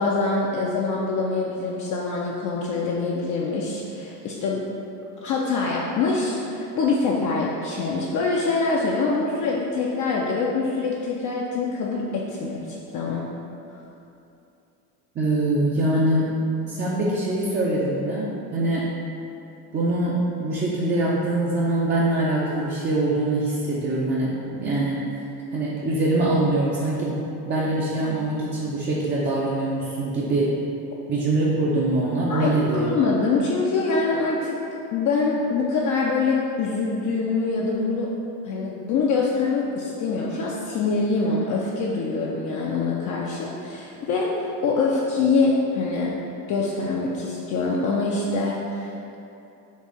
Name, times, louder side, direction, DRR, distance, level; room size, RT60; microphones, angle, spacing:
voice 1, 0.0-4.7 5.2-13.3 32.3-34.6 34.9-38.1 38.4-46.2 46.5-49.1, left 4 dB, 40° left, -3 dB, 0.4 m, -24 dB
voice 2, 15.2-16.4 16.7-18.9 19.7-25.0 25.5-30.5 31.1-32.9, right 2 dB, 25° right, -6 dB, 0.5 m, -23 dB
4.1 x 2.5 x 3.6 m, 2.8 s
hypercardioid pair, 85°, 48 cm